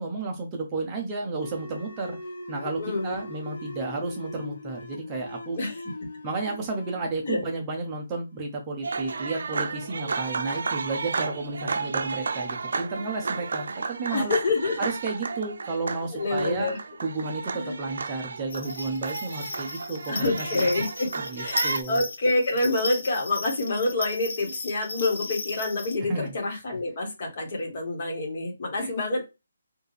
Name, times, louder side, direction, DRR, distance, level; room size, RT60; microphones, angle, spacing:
voice 1, 0.0-2.2 2.5-5.7 6.2-14.3 14.8-16.7 17.0-20.7 21.2-22.0 26.1-26.3 28.8-28.9, right 3 dB, 15° right, 0 dB, 0.7 m, -32 dB
sound 1, 1.3-8.5, left 1 dB, 80° left, 0.9 m, -41 dB
voice 2, 2.8-3.2 5.6-5.7 7.2-7.4 14.1-14.9 16.1-16.8 17.5-17.9 20.1-21.1 21.4-29.2, left 2 dB, 30° left, 0 dB, 1.5 m, -27 dB
sound 2, 8.8-21.8, right 4 dB, 60° right, 0.6 m, -32 dB
sound 3, 18.5-26.0, left 3 dB, 50° left, 0.7 m, -36 dB
4.4 x 2.6 x 3.3 m, 0.24 s
hypercardioid pair, 175°, 0 cm